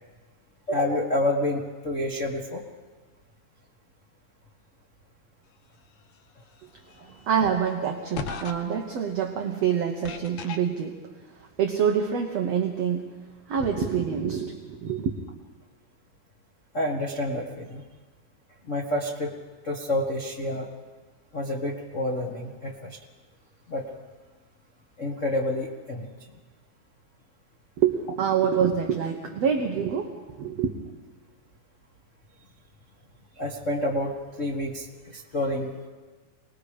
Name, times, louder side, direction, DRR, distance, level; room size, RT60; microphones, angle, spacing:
voice 1, 0.7-2.6 7.0-7.1 16.7-17.8 18.6-19.3 19.6-20.7 21.3-23.0 23.7-23.8 25.0-26.1 33.4-35.7, left 1 dB, 60° left, 0 dB, 0.7 m, -28 dB
sound 1, 6.9-7.0 8.1-8.5 10.0-10.6, left 6 dB, 80° left, 1.2 m, -33 dB
voice 2, 7.3-11.0 11.4-13.1 13.5-15.1 27.8-30.7, right 7 dB, 60° right, 2 dB, 1.8 m, -26 dB
27.0 x 20.0 x 5.0 m, 1.4 s
omnidirectional pair, 4.2 m